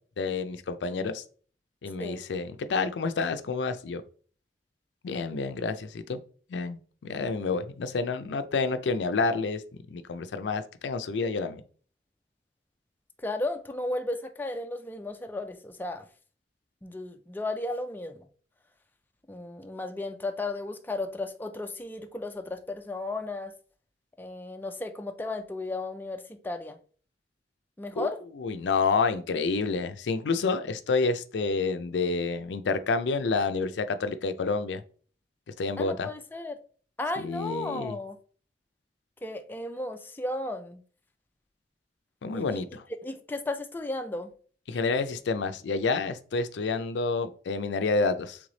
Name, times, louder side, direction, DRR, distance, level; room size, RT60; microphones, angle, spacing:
voice 1, 0.2-1.2 1.8-4.0 5.0-6.2 6.5-9.6 9.9-11.6 28.0-28.1 28.4-34.8 35.6-36.1 37.2-38.0 42.2-42.8 44.7-48.4, left 4 dB, 90° left, 0.4 m, -29 dB
voice 2, 13.2-16.0 16.8-18.2 19.3-23.5 24.2-26.8 27.8-28.2 35.8-36.6 37.0-38.2 39.2-40.8 42.3-42.6 43.0-44.3, left 2 dB, 10° left, 0.4 m, -34 dB
3.4 x 3.2 x 3.8 m
head